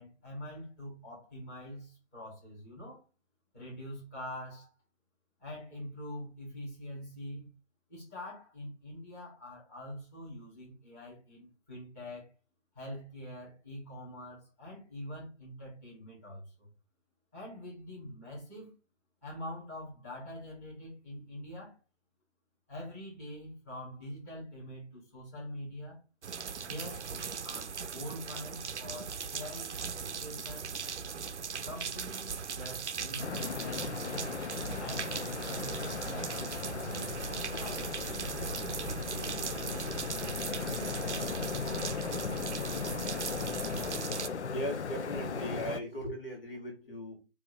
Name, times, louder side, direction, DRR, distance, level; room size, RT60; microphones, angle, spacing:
voice 1, 0.0-3.0 3.5-4.7 5.4-7.5 7.9-12.3 12.7-16.7 17.3-18.7 19.2-21.7 22.7-26.0 26.6-30.7 31.6-34.3 34.8-37.1 37.5-37.9, left 1 dB, 15° left, 1.7 m, -45 dB
sound 1, 26.2-44.3, right 6 dB, 85° right, 0.6 m, -39 dB
sound 2, 33.2-45.8, left 5 dB, 80° left, 0.6 m, -37 dB
Engine, 37.1-44.0, left 5 dB, 20° right, 0.8 m, -47 dB
voice 2, 44.5-47.2, equal, 55° left, 1.9 m, -38 dB
3.6 x 2.8 x 4.5 m
figure-of-eight pair, 170°, 34 cm